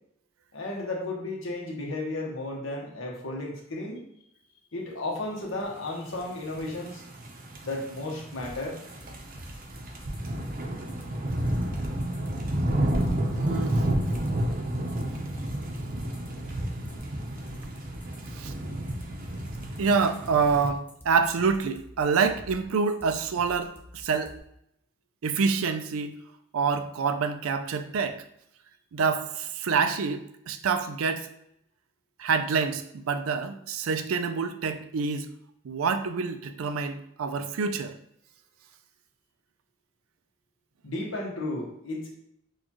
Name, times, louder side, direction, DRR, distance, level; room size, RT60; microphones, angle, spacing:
voice 1, 0.5-4.0 4.7-7.0 7.6-8.8 40.8-42.1, left 2 dB, 65° left, -1 dB, 1.1 m, -33 dB
sound 1, 6.4-20.7, right 1 dB, 40° right, 0.7 m, -31 dB
sound 2, 8.4-24.4, left 1 dB, 10° left, 0.5 m, -47 dB
voice 2, 13.4-13.9 18.4-18.5 19.8-24.3 25.2-26.2 26.5-28.2 28.9-31.3 32.2-35.3 35.6-38.0, right 5 dB, 85° right, 9 dB, 0.4 m, -27 dB
6.4 x 2.3 x 3.0 m, 0.76 s
head